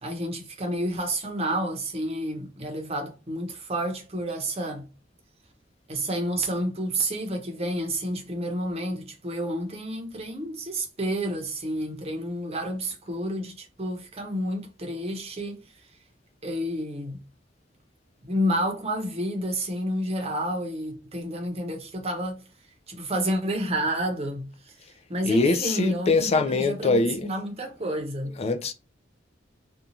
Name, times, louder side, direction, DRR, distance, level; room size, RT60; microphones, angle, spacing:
voice 1, 0.0-4.9 5.9-15.6 16.4-17.2 18.2-22.4 22.9-24.7 25.1-28.3, right 1 dB, 35° right, 0.7 m, -30 dB
voice 2, 25.2-27.3 28.2-28.7, left 3 dB, 35° left, 0.3 m, -23 dB
2.8 x 2.3 x 2.6 m
head